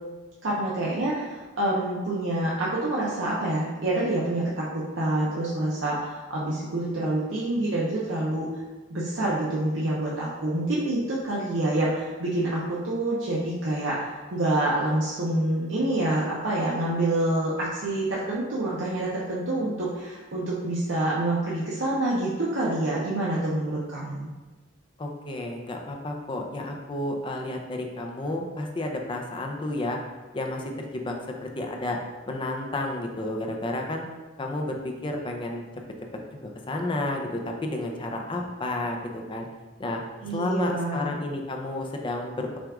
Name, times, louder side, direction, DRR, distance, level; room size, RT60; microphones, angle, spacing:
voice 1, 0.4-8.5 8.9-24.3 40.2-41.2, right 1 dB, 70° right, -7 dB, 0.7 m, -27 dB
voice 2, 25.0-30.0 30.3-32.0 32.2-34.0 34.4-35.7 36.3-39.5 39.8-40.0 40.3-42.6, left 2 dB, 25° left, 2 dB, 0.5 m, -31 dB
6.0 x 2.4 x 3.6 m, 1.2 s
head